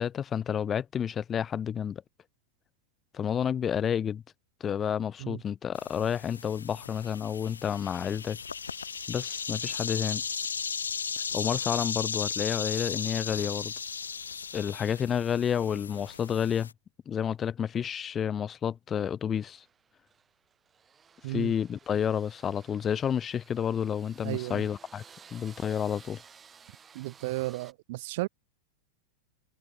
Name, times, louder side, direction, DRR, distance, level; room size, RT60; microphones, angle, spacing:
voice 1, 0.0-2.0 3.1-4.2 4.6-8.4 9.1-10.2 11.3-13.7 14.5-16.7 17.1-19.6 21.3-25.0 25.3-26.2, left 8 dB, 25° left, 0.7 m, -30 dB
sound 1, 5.7-16.7, left 6 dB, 70° left, 1.1 m, -36 dB
sound 2, 19.4-27.7, right 6 dB, 20° right, 6.9 m, -55 dB
voice 2, 24.2-24.6 26.9-28.3, right 20 dB, 50° right, 0.6 m, -34 dB
figure-of-eight pair, 90°, 0 cm